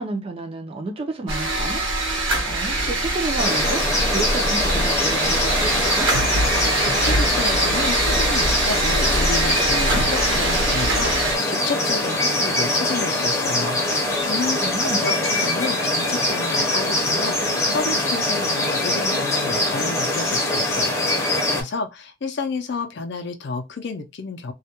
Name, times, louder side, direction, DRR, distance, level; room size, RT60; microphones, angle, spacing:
voice 1, 0.0-1.8 2.1-6.1 14.6-15.1, right 3 dB, 30° right, 0.4 m, -31 dB
sound 1, 1.3-11.4, right 2 dB, 75° right, 0.9 m, -23 dB
sound 2, 3.4-21.6, left 1 dB, 15° left, 0.6 m, -23 dB
voice 2, 6.6-24.5, left 4 dB, 60° left, 0.4 m, -31 dB
2.3 x 2.1 x 2.8 m
head